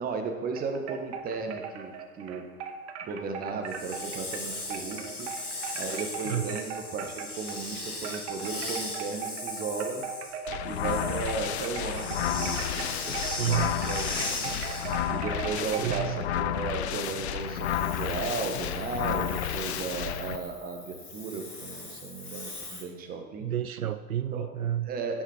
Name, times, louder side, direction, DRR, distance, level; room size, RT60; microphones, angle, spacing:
voice 1, 0.0-2.4 3.0-5.3 5.7-10.0 10.6-14.6 15.1-23.5 24.3-24.5 24.9-25.2, right 4 dB, 20° right, 4 dB, 1.3 m, -35 dB
sound 1, 0.5-7.7 8.0-16.1, right 6 dB, 50° right, 1.1 m, -39 dB
Hiss, 3.7-15.2 17.4-22.8, left 2 dB, 80° left, 2.3 m, -39 dB
voice 2, 6.2-6.6 13.2-13.7 15.8-16.2 23.4-24.9, right 11 dB, 70° right, 11 dB, 0.6 m, -30 dB
sound 2, 10.5-20.4, left 11 dB, 50° left, 0.7 m, -31 dB
16.0 x 6.1 x 4.4 m, 1.4 s
figure-of-eight pair, 105°, 44 cm